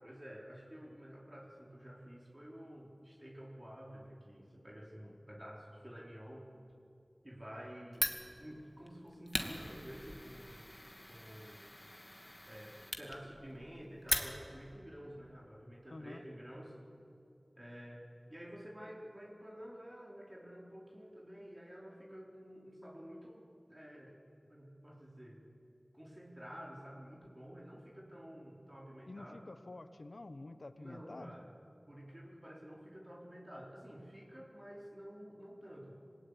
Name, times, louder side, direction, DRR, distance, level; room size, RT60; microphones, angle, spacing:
voice 1, 0.0-6.5 7.2-10.7 11.1-11.6 12.4-16.8 17.6-24.2 24.5-25.4 25.9-29.4 30.7-31.5 31.9-36.0, equal, 20° right, -3 dB, 4.4 m, -51 dB
Fire, 7.9-14.7, left 1 dB, 20° left, 2.4 m, -41 dB
voice 2, 15.9-16.2 29.1-31.3, left 2 dB, 75° left, 10 dB, 1.2 m, -49 dB
26.5 x 21.0 x 9.9 m, 2.7 s
wide cardioid pair, 45°, 0 cm